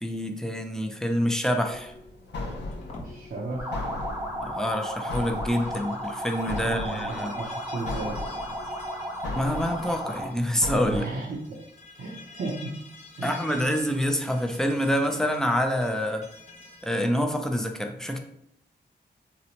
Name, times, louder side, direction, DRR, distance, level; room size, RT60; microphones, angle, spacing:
voice 1, 0.0-1.9 4.4-7.3 9.4-11.1 13.2-16.2 16.8-18.2, equal, 5° left, 5 dB, 0.3 m, -27 dB
sound 1, 1.7-11.0, left 2 dB, 80° left, 0.4 m, -38 dB
sound 2, 2.5-3.1 5.0-17.1, left 3 dB, 40° left, 0.7 m, -48 dB
voice 2, 3.0-3.7 6.6-8.2 10.9-11.5 12.0-12.8 13.2-13.3, right 3 dB, 65° right, -3 dB, 0.6 m, -34 dB
sound 3, 3.6-10.4, equal, 15° right, 0.7 m, -34 dB
2.8 x 2.0 x 2.8 m, 0.77 s
cardioid pair, 60°, 18 cm